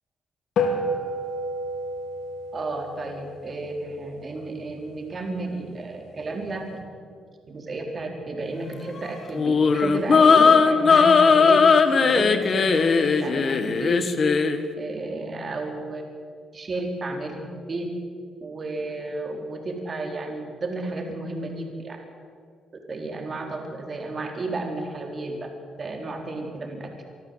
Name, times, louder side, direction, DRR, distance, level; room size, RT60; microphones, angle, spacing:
sound 1, 0.6-5.2, left 1 dB, 70° left, 2.9 m, -31 dB
voice 1, 2.5-6.6 7.5-11.6 12.0-14.1 14.8-16.0 16.5-17.9 18.4-22.0 22.9-25.5 25.8-26.9, right 2 dB, 35° right, 2 dB, 4.1 m, -32 dB
sound 2, 9.3-14.6, left 5 dB, 45° left, 1.5 m, -18 dB
25.0 x 13.0 x 8.0 m, 2.1 s
cardioid pair, 90°, 0 cm